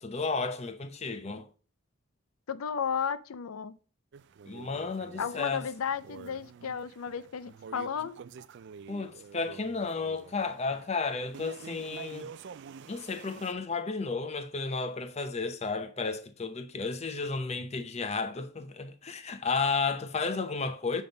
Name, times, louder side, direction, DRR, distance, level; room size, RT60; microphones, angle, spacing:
voice 1, 0.0-1.5 4.5-5.7 8.9-12.3 12.9-21.0, left 4 dB, 30° left, 0.7 m, -33 dB
voice 2, 2.5-3.8 5.2-8.2, left 7 dB, 80° left, 0.5 m, -34 dB
sound 1, 4.1-13.5, right 6 dB, 55° right, 0.3 m, -48 dB
7.8 x 3.5 x 5.2 m
head